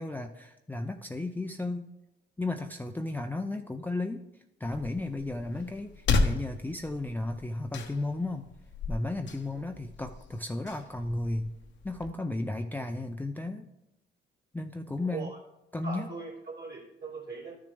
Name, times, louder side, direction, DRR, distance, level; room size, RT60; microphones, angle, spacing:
voice 1, 0.0-1.9 2.4-4.3 4.6-8.5 8.9-11.5 11.8-13.7 14.5-15.3 15.7-16.1, left 2 dB, 10° left, 5 dB, 0.4 m, -34 dB
sound 1, 4.6-12.1, left 3 dB, 65° left, 0.9 m, -34 dB
voice 2, 15.0-15.4 15.8-17.6, right 4 dB, 55° right, -4 dB, 2.8 m, -40 dB
12.0 x 6.8 x 3.3 m, 0.93 s
cardioid pair, 90°, 20 cm